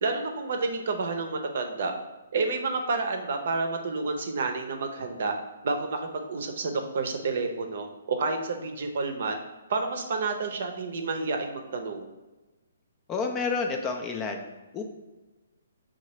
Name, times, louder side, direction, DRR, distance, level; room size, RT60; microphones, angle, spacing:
voice 1, 0.0-1.9 2.3-5.4 5.6-9.4 9.7-12.0, right 3 dB, 60° right, 5 dB, 0.6 m, -29 dB
voice 2, 13.1-14.8, left 4 dB, 20° left, 4 dB, 0.3 m, -30 dB
5.6 x 2.4 x 3.0 m, 1.1 s
hypercardioid pair, 155°, 0 cm